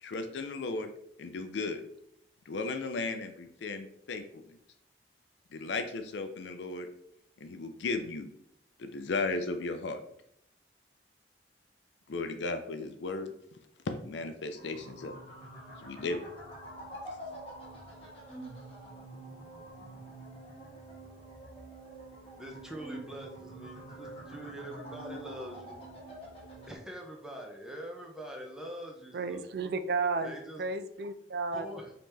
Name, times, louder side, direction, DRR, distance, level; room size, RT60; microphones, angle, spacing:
voice 1, 0.0-0.9 1.2-1.8 2.5-4.6 5.5-6.9 7.4-8.3 8.8-10.0 12.1-13.3 13.9-15.2 15.8-16.3, left 3 dB, 80° left, 7 dB, 0.4 m, -35 dB
sound 1, 14.6-26.8, right 1 dB, 30° left, 1.2 m, -46 dB
voice 2, 22.4-25.8 26.7-29.4 30.2-30.6 31.5-31.9, right 1 dB, 5° right, 0 dB, 0.6 m, -44 dB
voice 3, 29.1-31.8, right 4 dB, 60° right, 10 dB, 0.4 m, -33 dB
5.2 x 2.9 x 3.3 m, 0.74 s
head